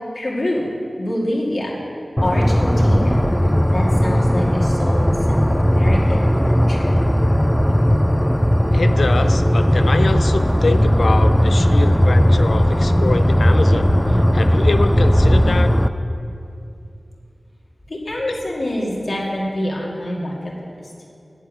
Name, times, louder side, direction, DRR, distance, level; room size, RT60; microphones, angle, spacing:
voice 1, 0.1-0.7 1.0-1.8 2.2-6.9 17.9-20.3, left 1 dB, 65° left, -4 dB, 2.4 m, -26 dB
sound 1, 2.2-15.9, equal, 10° left, 0.4 m, -16 dB
voice 2, 8.7-15.7 18.3-18.4, left 3 dB, 85° left, 9 dB, 0.5 m, -24 dB
8.4 x 7.5 x 8.9 m, 2.6 s
wide cardioid pair, 45°, 0 cm